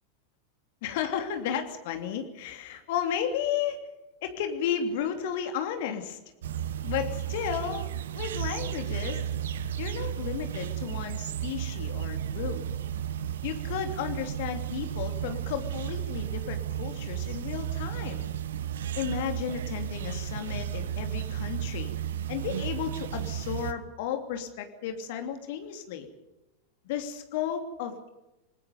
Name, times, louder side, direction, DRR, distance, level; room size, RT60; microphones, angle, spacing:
voice 1, 0.8-3.8 4.2-6.2 6.8-9.2 9.8-12.6 13.4-18.3 19.0-21.9 22.3-26.1 26.8-28.1, left 8 dB, 50° left, 6 dB, 2.9 m, -33 dB
sound 1, 6.4-23.7, right 10 dB, 60° right, 1.2 m, -33 dB
28.5 x 20.0 x 5.3 m, 0.99 s
figure-of-eight pair, 90°, 0 cm